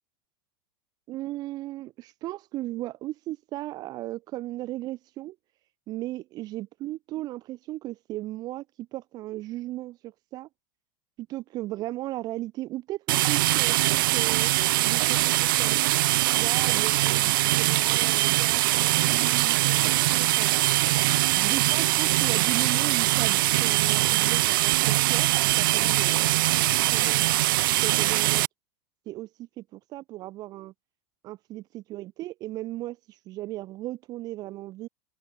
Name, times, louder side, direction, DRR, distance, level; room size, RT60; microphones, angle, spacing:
voice 1, 1.1-5.4 5.9-10.5 11.2-14.5 14.8-15.8 16.4-20.5 21.3-25.3 25.5-27.3 27.8-28.4 29.0-30.7 31.2-34.9, right 16 dB, 35° right, 1.6 m, -36 dB
sound 1, 13.1-28.5, right 17 dB, 70° right, 1.0 m, -22 dB
supercardioid pair, 155°, 12 cm